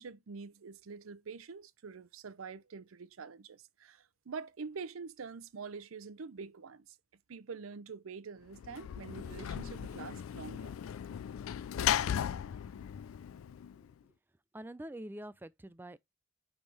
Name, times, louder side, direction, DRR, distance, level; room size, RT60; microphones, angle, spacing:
voice 1, 0.0-7.0 7.3-10.7, right 5 dB, 85° right, 0.6 m, -46 dB
Sliding door / Slam, 8.5-13.9, left 10 dB, 80° left, 0.3 m, -36 dB
voice 2, 13.6-13.9 14.5-16.0, right 1 dB, 10° right, 0.3 m, -46 dB
9.2 x 3.6 x 3.3 m
head